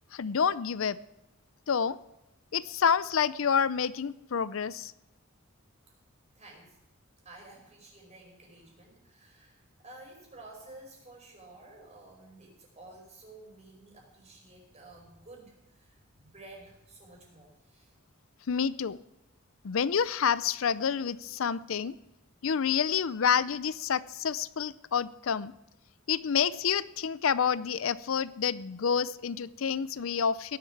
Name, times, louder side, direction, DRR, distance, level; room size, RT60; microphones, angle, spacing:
voice 1, 0.1-1.0 1.7-2.0 2.5-4.9 18.5-19.0 19.6-21.9 22.4-25.5 26.1-30.6, left 7 dB, 75° left, 17 dB, 0.5 m, -28 dB
voice 2, 6.4-6.8 7.3-17.9, right 2 dB, 35° right, 0 dB, 5.2 m, -52 dB
17.5 x 11.5 x 4.7 m, 0.88 s
head